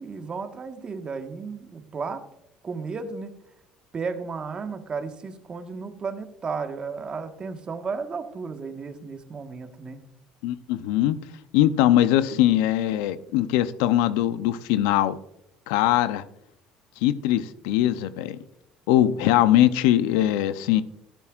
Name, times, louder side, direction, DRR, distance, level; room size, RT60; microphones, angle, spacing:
voice 1, 0.0-2.2 2.6-3.3 3.9-10.0, right 5 dB, 35° right, 7 dB, 1.4 m, -34 dB
voice 2, 10.4-11.2 11.5-15.2 15.7-16.2 17.0-18.4 18.9-20.8, left 13 dB, 85° left, 14 dB, 0.6 m, -21 dB
12.5 x 11.0 x 2.4 m, 0.77 s
supercardioid pair, 85°, 3 cm